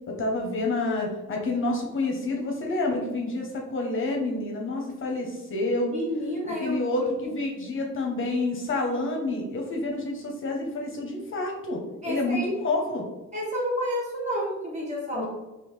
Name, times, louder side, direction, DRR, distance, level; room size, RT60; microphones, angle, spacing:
voice 1, 0.1-5.9 6.4-13.0 15.1-15.3, left 2 dB, 45° left, 1 dB, 0.8 m, -28 dB
voice 2, 5.9-6.8 7.2-7.3 12.0-12.5 13.3-15.3, equal, 25° right, -3 dB, 1.4 m, -30 dB
3.5 x 2.8 x 3.2 m, 1.1 s
cardioid pair, 90°, 30 cm